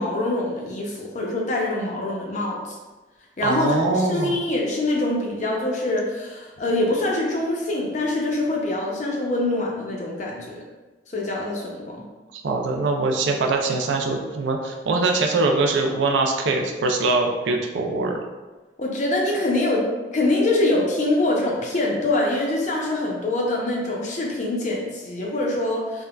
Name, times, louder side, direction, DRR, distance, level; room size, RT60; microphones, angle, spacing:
voice 1, 0.0-2.7 3.4-10.6 11.1-12.0 18.8-19.9 20.1-26.0, left 2 dB, 40° left, -2 dB, 0.5 m, -24 dB
voice 2, 3.4-4.4 12.3-18.2, right 3 dB, 85° right, 2 dB, 0.4 m, -23 dB
3.5 x 2.1 x 2.3 m, 1.2 s
head